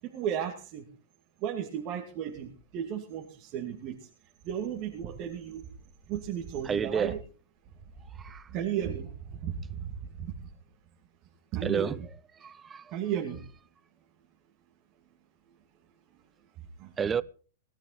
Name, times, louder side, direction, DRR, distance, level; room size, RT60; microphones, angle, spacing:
voice 1, 0.0-0.9 1.4-4.1 4.4-5.6 6.1-7.2 8.5-10.4 11.5-12.0 12.9-13.4 16.8-16.9, right 9 dB, 40° right, 2.4 m, -34 dB
voice 2, 6.6-7.2 8.1-8.5 11.6-12.0 12.4-13.0 17.0-17.2, right 6 dB, 20° right, 0.6 m, -30 dB
18.5 x 12.0 x 4.1 m
hypercardioid pair, 130°, 0 cm